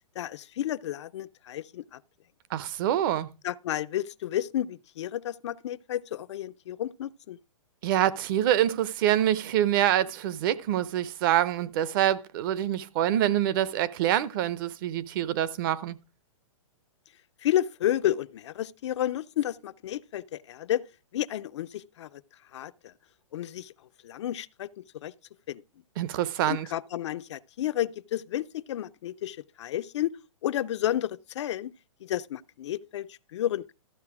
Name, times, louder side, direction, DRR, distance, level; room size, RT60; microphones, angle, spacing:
voice 1, 0.2-2.0 3.4-7.4 17.4-20.8 21.1-22.2 22.5-22.9 23.3-23.7 24.0-25.1 25.5-25.6 26.5-30.2 30.4-31.7 32.0-33.7, left 12 dB, 55° left, 0.5 m, -31 dB
voice 2, 2.5-3.3 7.8-16.0 26.0-26.7, right 11 dB, 40° right, 0.8 m, -26 dB
13.5 x 6.7 x 4.8 m
hypercardioid pair, 150°, 17 cm